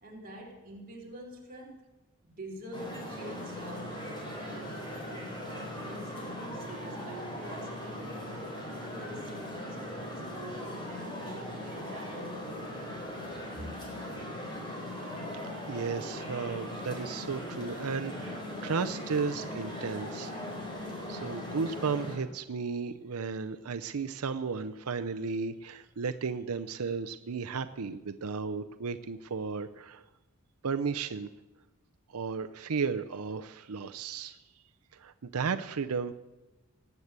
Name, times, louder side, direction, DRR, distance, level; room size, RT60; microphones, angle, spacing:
voice 1, 0.0-1.9 2.2-8.3 8.8-13.7, right 1 dB, 40° right, -2 dB, 3.5 m, -46 dB
sound 1, 2.7-22.2, left 1 dB, 20° left, 3.8 m, -39 dB
voice 2, 15.5-20.3 21.1-30.0 30.6-31.3 32.1-34.4 34.9-36.1, right 5 dB, 80° right, 10 dB, 0.6 m, -34 dB
19.5 x 8.2 x 8.2 m, 1.1 s
head